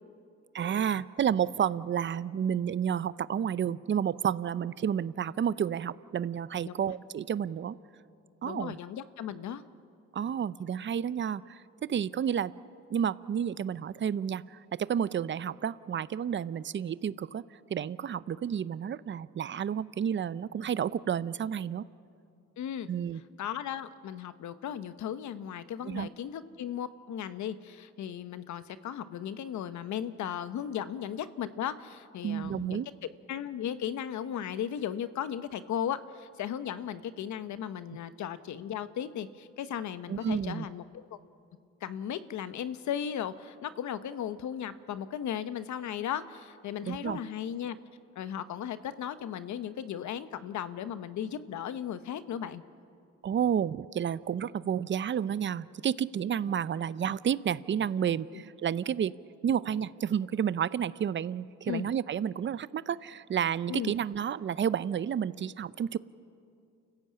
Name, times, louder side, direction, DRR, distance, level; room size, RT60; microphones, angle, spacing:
voice 1, 0.5-7.8 8.4-8.8 10.1-12.5 12.9-21.8 22.9-23.2 25.8-26.1 32.2-32.9 40.1-40.7 46.8-47.2 53.2-59.1 59.4-66.0, right 8 dB, 40° right, 18 dB, 0.6 m, -31 dB
voice 2, 8.4-9.6 22.6-22.9 23.4-32.8 33.3-41.2 41.8-47.8 48.1-52.6 58.3-58.4 61.7-61.9 63.7-63.9, left 9 dB, 70° left, 13 dB, 1.1 m, -36 dB
29.0 x 15.0 x 8.7 m, 2.5 s
cardioid pair, 90°, 30 cm